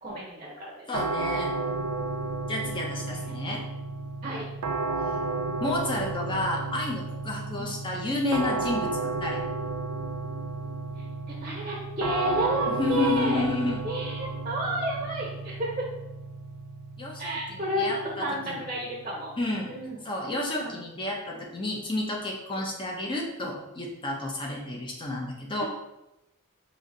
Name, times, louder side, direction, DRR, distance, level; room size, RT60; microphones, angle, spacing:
voice 1, 0.0-1.0 3.2-3.3 4.2-4.5 7.5-7.7 11.0-13.4 13.8-15.9 17.2-19.3 19.7-20.0 20.6-20.8 21.3-21.5 25.6-25.7, right 1 dB, 25° right, -3 dB, 0.8 m, -31 dB
voice 2, 0.9-1.5 2.5-3.6 5.6-9.4 12.7-13.8 17.0-18.6 19.4-19.7 20.0-25.7, left 2 dB, 20° left, -1 dB, 0.8 m, -31 dB
sound 1, 0.9-19.8, right 3 dB, 85° right, 0.4 m, -33 dB
4.9 x 2.7 x 3.9 m, 0.90 s
head